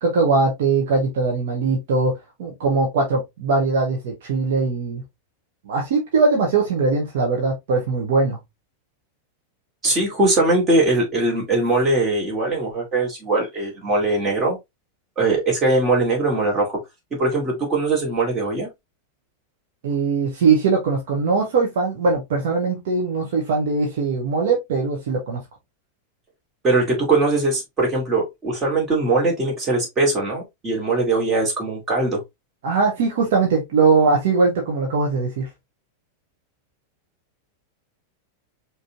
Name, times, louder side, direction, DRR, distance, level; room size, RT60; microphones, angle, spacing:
voice 1, 0.0-2.1 2.4-5.0 5.6-8.4 19.8-25.4 32.6-35.5, right 4 dB, 55° right, 1.4 m, -20 dB
voice 2, 9.8-14.6 15.2-16.8 17.1-18.7 26.6-32.2, right 2 dB, 25° right, 2.7 m, -21 dB
5.3 x 3.3 x 2.8 m
figure-of-eight pair, 90°, 0 cm